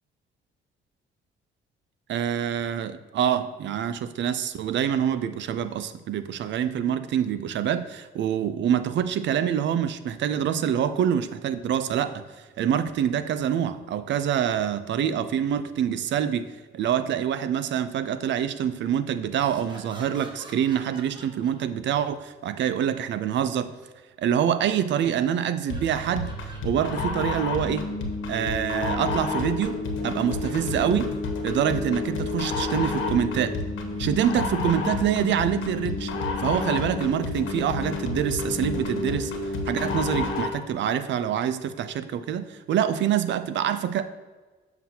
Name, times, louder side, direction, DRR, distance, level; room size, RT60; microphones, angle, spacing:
voice 1, 2.1-12.2 12.6-23.7 24.2-26.3 26.6-27.9 28.3-31.1 31.4-33.6 34.0-36.1 36.4-39.3 39.7-44.0, right 9 dB, 65° right, 13 dB, 0.5 m, -26 dB
sound 1, 19.3-22.1 24.8-25.2 25.7-27.2 27.8-27.9 30.4-31.1 33.9-34.6 35.6-35.7, right 1 dB, 25° right, 1.3 m, -48 dB
sound 2, 25.7-40.6, left 3 dB, 80° left, 1.2 m, -29 dB
7.5 x 5.9 x 2.8 m, 1.3 s
cardioid pair, 90°, 20 cm